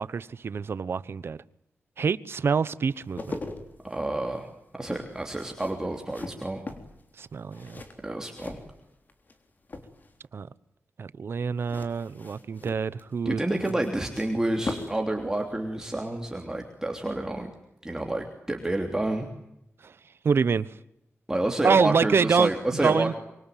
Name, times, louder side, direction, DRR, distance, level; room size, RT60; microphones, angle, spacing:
voice 1, 0.0-1.4 2.0-3.4 7.2-7.8 10.3-10.5 11.0-13.4 19.8-19.9 20.2-20.7 21.6-22.5 22.8-23.1, right 5 dB, 60° right, 17 dB, 1.0 m, -26 dB
sound 1, 2.9-9.4 9.6-10.3 11.6-15.1 15.3-15.5, left 3 dB, 40° left, 3.6 m, -40 dB
voice 2, 3.8-4.5 4.7-6.6 8.0-8.6 13.2-17.5 17.8-19.3 21.3-23.1, right 1 dB, 10° right, 2 dB, 3.1 m, -29 dB
26.0 x 24.0 x 9.2 m, 0.81 s
wide cardioid pair, 150°, 5 cm